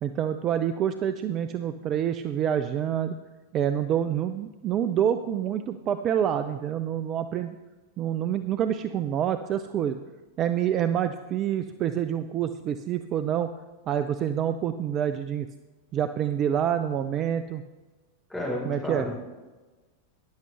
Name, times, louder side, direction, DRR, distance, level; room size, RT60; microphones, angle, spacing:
voice 1, 0.0-3.2 3.5-7.6 8.0-10.0 10.4-13.5 13.9-15.5 15.9-17.6 18.6-19.1, right 9 dB, 30° right, 10 dB, 0.5 m, -27 dB
voice 2, 18.3-19.1, equal, 5° left, -4 dB, 4.1 m, -31 dB
13.5 x 10.5 x 3.3 m, 1.2 s
figure-of-eight pair, 90°, 0 cm